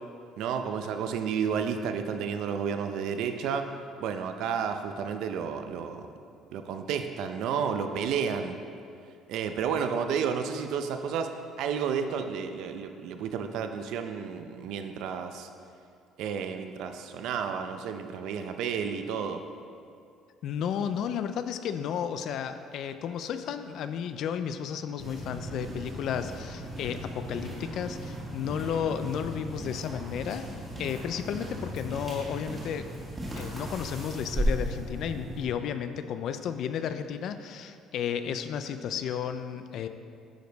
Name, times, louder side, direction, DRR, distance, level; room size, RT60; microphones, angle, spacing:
voice 1, 0.4-3.7 4.0-6.1 6.5-8.6 9.3-15.5 16.2-19.4, right 7 dB, 65° right, 7 dB, 0.5 m, -31 dB
voice 2, 20.4-30.4 30.8-32.8 33.4-39.9, left 8 dB, 55° left, 10 dB, 0.3 m, -33 dB
sound 1, 25.0-35.4, equal, 20° right, 1.5 m, -36 dB
9.0 x 5.2 x 4.0 m, 2.4 s
cardioid pair, 165°, 0 cm